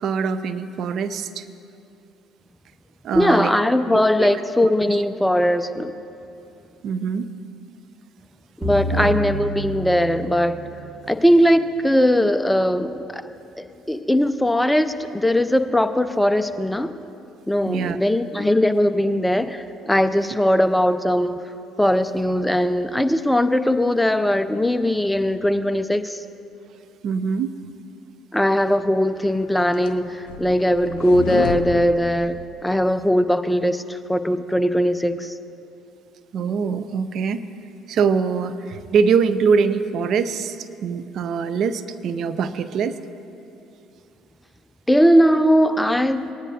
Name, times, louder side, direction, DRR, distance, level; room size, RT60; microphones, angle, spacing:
voice 1, 0.0-1.5 3.0-3.5 3.9-4.4 4.9-5.0 6.8-7.3 8.9-9.2 17.7-18.0 27.0-27.5 36.3-37.4 37.9-43.0, right 6 dB, 60° right, 13 dB, 0.4 m, -23 dB
voice 2, 3.1-5.9 8.6-10.6 11.1-13.3 13.6-16.9 17.5-21.4 21.8-26.2 28.3-32.4 32.6-35.3 44.9-46.3, equal, 5° left, 11 dB, 0.5 m, -19 dB
sound 1, 8.6-11.0, equal, 35° right, 2.3 m, -28 dB
sound 2, 29.3-32.9, left 7 dB, 80° left, 0.6 m, -31 dB
19.0 x 9.9 x 2.8 m, 2.7 s
hypercardioid pair, 60°, 0 cm